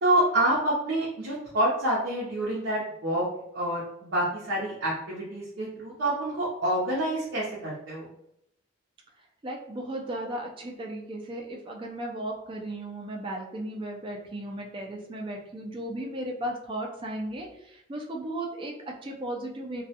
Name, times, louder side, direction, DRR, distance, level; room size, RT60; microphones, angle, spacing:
voice 1, 0.0-3.3 3.5-8.1, right 1 dB, 75° right, -7 dB, 0.7 m, -27 dB
voice 2, 9.4-19.8, right 1 dB, 25° right, 1 dB, 0.3 m, -35 dB
2.3 x 2.1 x 2.7 m, 0.78 s
head